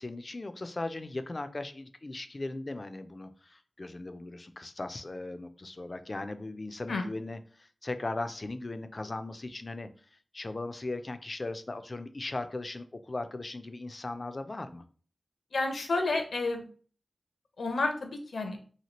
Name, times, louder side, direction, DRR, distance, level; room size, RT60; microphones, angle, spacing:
voice 1, 0.0-14.8, left 2 dB, 40° left, 10 dB, 0.3 m, -38 dB
voice 2, 15.5-16.6 17.6-18.6, left 3 dB, 80° left, 5 dB, 0.6 m, -30 dB
2.8 x 2.7 x 2.9 m, 0.42 s
wide cardioid pair, 75°, 0 cm